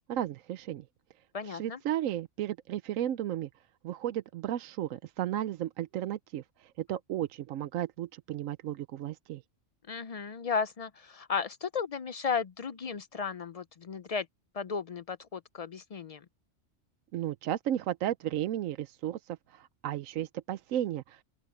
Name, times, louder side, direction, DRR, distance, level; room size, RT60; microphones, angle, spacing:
voice 1, 0.1-0.8 1.4-3.5 3.8-9.4 17.1-21.2, right 12 dB, 80° right, 1.0 m, -34 dB
voice 2, 1.3-1.8 9.9-14.3 14.5-16.2, left 5 dB, 70° left, 0.3 m, -34 dB
open air
omnidirectional pair, 1.4 m